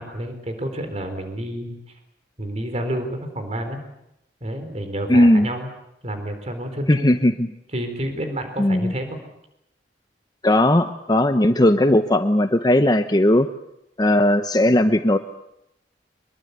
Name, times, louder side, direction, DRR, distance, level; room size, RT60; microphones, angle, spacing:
voice 1, 0.0-2.0 2.4-3.8 4.4-5.7 6.0-7.2 7.7-9.1, right 1 dB, 40° right, 7 dB, 3.8 m, -29 dB
voice 2, 5.1-5.5 6.9-7.5 8.6-8.9 10.4-13.5 14.0-15.2, left 1 dB, 25° left, 8 dB, 0.9 m, -17 dB
25.0 x 22.5 x 8.1 m, 0.83 s
head